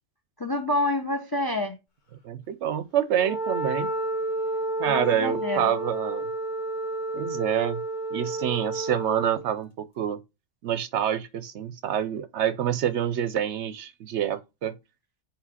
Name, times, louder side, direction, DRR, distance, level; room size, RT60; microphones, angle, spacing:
voice 1, 0.4-1.8 4.9-5.7, left 1 dB, 25° left, 0.6 m, -27 dB
voice 2, 2.2-3.9 4.8-6.3 7.1-7.8 8.1-10.2 10.6-14.7, right 9 dB, 65° right, 0.8 m, -27 dB
Wind instrument woodwind instrument, 3.2-9.5, right 2 dB, 40° left, 1.3 m, -30 dB
4.8 x 3.6 x 5.5 m
omnidirectional pair, 1.3 m